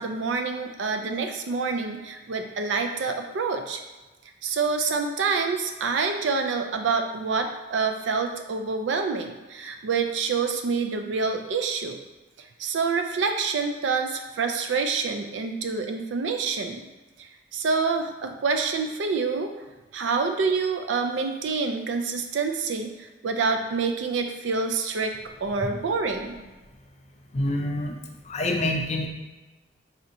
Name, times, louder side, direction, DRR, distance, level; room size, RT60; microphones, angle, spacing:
voice 1, 0.0-3.8 4.4-12.0 12.6-16.8 17.5-19.5 19.9-22.9 23.2-25.1 25.4-26.3, right 4 dB, 85° right, 5 dB, 0.4 m, -27 dB
voice 2, 27.3-28.0 28.2-29.1, left 1 dB, 35° left, 2 dB, 0.4 m, -26 dB
4.3 x 2.8 x 2.6 m, 1.1 s
head